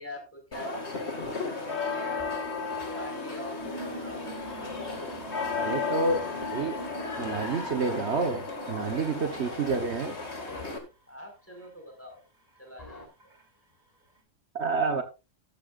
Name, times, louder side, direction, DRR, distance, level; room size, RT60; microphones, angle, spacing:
voice 1, 0.0-2.4 2.9-4.4 11.1-12.2 12.6-13.3, left 1 dB, 10° left, 2 dB, 5.0 m, -45 dB
sound 1, 0.5-10.8, left 4 dB, 60° left, 2.5 m, -34 dB
sound 2, 2.2-10.8 12.8-13.1, left 1 dB, 30° left, 6.0 m, -48 dB
sound 3, 3.6-10.0 10.3-10.9 11.6-11.7 12.6-12.7 13.2-13.4, right 2 dB, 35° right, 3.4 m, -46 dB
voice 2, 5.6-6.8 7.2-10.2 14.5-15.0, right 4 dB, 60° right, 7 dB, 1.4 m, -29 dB
13.5 x 12.0 x 2.5 m, 0.28 s
omnidirectional pair, 1.3 m